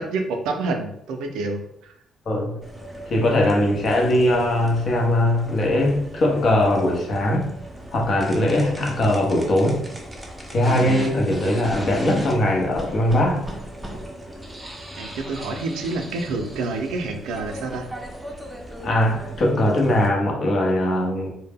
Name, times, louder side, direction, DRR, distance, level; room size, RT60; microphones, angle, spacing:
voice 1, 0.0-1.9 15.0-17.9, right 3 dB, 90° right, 5 dB, 0.4 m, -28 dB
voice 2, 2.3-2.6 3.1-7.5 7.9-9.8 10.5-13.4 18.8-21.3, left 1 dB, 50° left, 0 dB, 0.7 m, -20 dB
sound 1, 2.6-20.1, right 1 dB, 10° right, 0.5 m, -36 dB
2.1 x 2.0 x 3.4 m, 0.74 s
cardioid pair, 90°, 0 cm